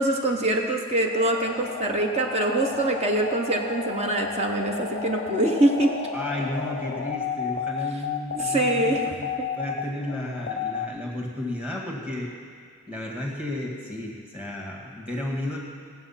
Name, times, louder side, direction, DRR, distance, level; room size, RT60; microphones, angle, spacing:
voice 1, 0.0-5.9 8.4-9.0 9.4-9.5, right 1 dB, 30° right, 2 dB, 1.0 m, -24 dB
sound 1, 1.0-10.9, left 6 dB, 40° left, 0.6 m, -32 dB
voice 2, 6.1-12.3 12.9-15.6, left 1 dB, 5° right, -1 dB, 1.9 m, -33 dB
18.0 x 7.0 x 5.8 m, 2.2 s
head